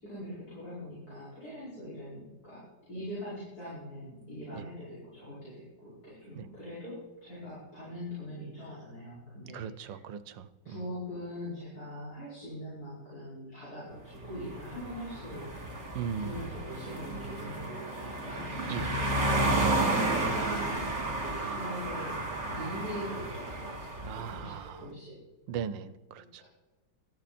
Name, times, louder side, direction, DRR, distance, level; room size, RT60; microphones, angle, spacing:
voice 1, 0.0-10.0 10.6-15.5 16.2-18.5 19.2-20.8 21.1-22.2 22.5-25.2, left 1 dB, 55° left, -9 dB, 5.9 m, -42 dB
voice 2, 9.5-10.8 15.9-16.6 18.7-18.9 24.0-24.9 25.5-26.4, right 7 dB, 90° right, 14 dB, 1.5 m, -38 dB
sound 1, 14.2-24.5, right 2 dB, 35° right, 3.0 m, -32 dB
19.5 x 13.0 x 4.3 m, 1.1 s
omnidirectional pair, 1.9 m